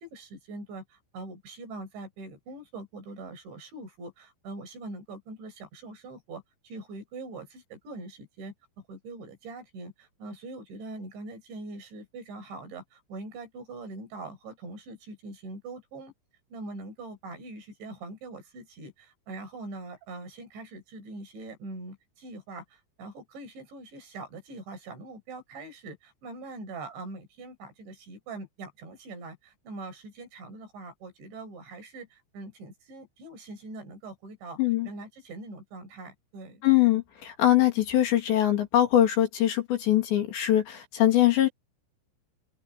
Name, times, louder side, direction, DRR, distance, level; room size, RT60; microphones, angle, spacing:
voice 1, 0.0-8.5 8.9-16.1 16.5-34.6 34.8-36.6, right 2 dB, 60° right, 8.6 m, -42 dB
voice 2, 36.6-41.5, left 13 dB, 60° left, 5.0 m, -22 dB
open air
omnidirectional pair, 5.9 m